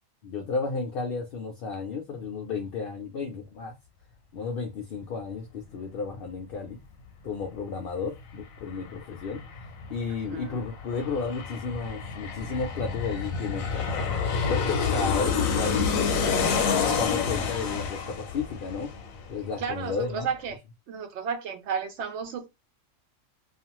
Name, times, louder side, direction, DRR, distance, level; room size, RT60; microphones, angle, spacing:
voice 1, 0.2-3.7 4.3-6.8 7.2-9.4 9.9-14.2 14.5-15.9 16.8-18.9 19.3-20.3, left 4 dB, 60° left, 0.6 m, -33 dB
Aircraft, 8.0-8.1 8.4-19.7 20.0-20.1, left 5 dB, 85° left, 1.0 m, -28 dB
voice 2, 19.6-20.6 20.9-22.5, right 6 dB, 65° right, 0.9 m, -33 dB
2.4 x 2.4 x 2.9 m
omnidirectional pair, 1.4 m